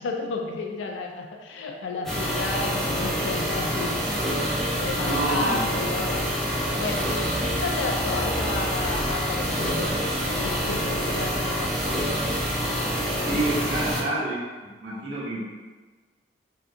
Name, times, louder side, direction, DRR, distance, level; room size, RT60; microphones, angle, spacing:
voice 1, 0.0-4.1 4.8-12.2, left 3 dB, 85° left, 2 dB, 0.4 m, -32 dB
sound 1, 2.1-14.0, equal, ahead, 0.5 m, -27 dB
voice 2, 5.0-5.6 13.2-15.4, right 2 dB, 80° right, -7 dB, 0.8 m, -28 dB
2.7 x 2.4 x 2.4 m, 1.3 s
head